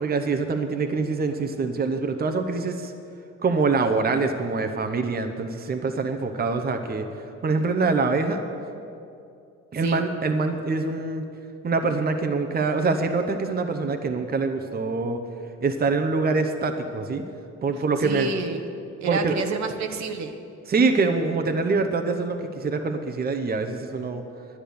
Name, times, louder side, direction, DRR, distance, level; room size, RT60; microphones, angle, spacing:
voice 1, 0.0-2.9 3.4-7.1 7.4-8.4 9.7-11.2 11.6-15.2 15.6-17.2 17.6-18.3 19.0-19.4 20.7-24.2, right 4 dB, 30° right, 6 dB, 0.8 m, -24 dB
voice 2, 18.0-18.6 19.0-20.3, right 4 dB, 65° right, 5 dB, 1.1 m, -29 dB
10.5 x 9.9 x 6.9 m, 2.6 s
cardioid pair, 90°, 30 cm